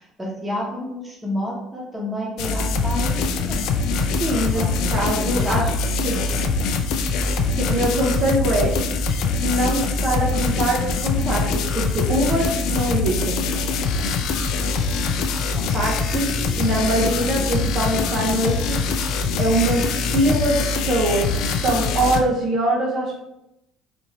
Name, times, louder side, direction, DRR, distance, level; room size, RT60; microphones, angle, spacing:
voice 1, 0.0-3.7 4.1-5.6 6.1-6.2 14.6-14.8 15.5-15.6, equal, 10° right, -3 dB, 1.0 m, -31 dB
sound 1, 2.4-22.2, left 4 dB, 70° left, 0.4 m, -23 dB
voice 2, 4.2-4.6 4.9-5.6 6.0-6.2 7.5-8.7 9.4-13.4 15.7-18.8 19.4-23.2, right 1 dB, 45° right, -2 dB, 0.6 m, -23 dB
4.3 x 2.6 x 2.9 m, 0.87 s
cardioid pair, 140°, 0 cm